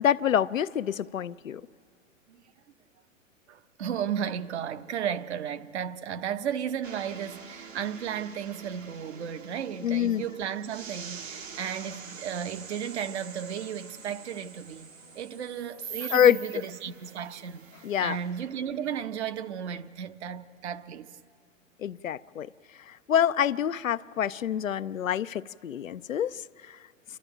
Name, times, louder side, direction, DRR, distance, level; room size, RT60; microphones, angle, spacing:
voice 1, 0.0-1.6 9.8-10.2 16.1-16.4 17.8-18.2 21.8-22.5 22.9-26.4 26.7-26.8, left 9 dB, 85° left, 0.5 m, -26 dB
voice 2, 3.5-14.9 15.1-21.2, right 8 dB, 60° right, 0.9 m, -34 dB
sound 1, 6.8-19.8, right 6 dB, 75° right, 1.7 m, -45 dB
29.0 x 12.5 x 9.0 m
figure-of-eight pair, 105°, 39 cm